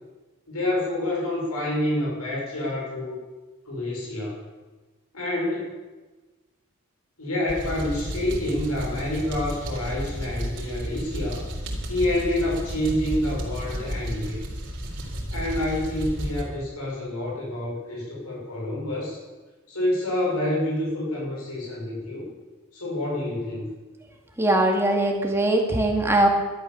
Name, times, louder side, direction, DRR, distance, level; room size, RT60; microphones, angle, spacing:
voice 1, 0.5-3.2 3.6-4.4 5.1-5.7 7.2-11.5 11.9-14.4 15.3-19.2 19.7-22.3 22.7-23.7, left 1 dB, 90° left, -3 dB, 6.1 m, -28 dB
sound 1, 7.5-16.4, equal, 55° right, 3.7 m, -32 dB
voice 2, 24.4-26.3, right 1 dB, 10° right, 1 dB, 2.2 m, -21 dB
12.5 x 12.0 x 7.1 m, 1.2 s
head